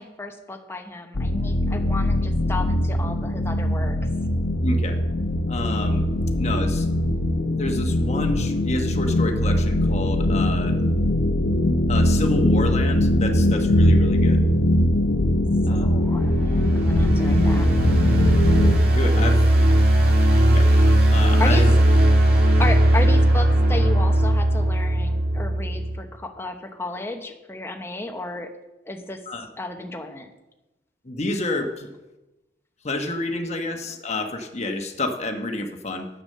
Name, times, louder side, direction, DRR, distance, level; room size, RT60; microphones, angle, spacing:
voice 1, 0.0-4.0 15.7-17.7 19.0-19.5 21.4-21.7 22.6-28.5 28.8-29.2 29.6-30.3, left 2 dB, 15° left, 4 dB, 1.0 m, -33 dB
sound 1, 1.1-18.8, left 1 dB, 65° left, 0.8 m, -21 dB
voice 2, 4.6-5.0 5.5-6.0 6.4-6.9 7.6-10.8 11.9-14.4 15.6-16.0 18.9-19.4 20.5-20.7 21.1-21.7 29.3-29.5 31.0-31.9 32.8-36.1, left 2 dB, 40° left, 5 dB, 1.2 m, -29 dB
sound 2, 15.8-26.0, right 1 dB, 55° right, 2.0 m, -18 dB
9.5 x 8.1 x 6.6 m, 1.0 s
head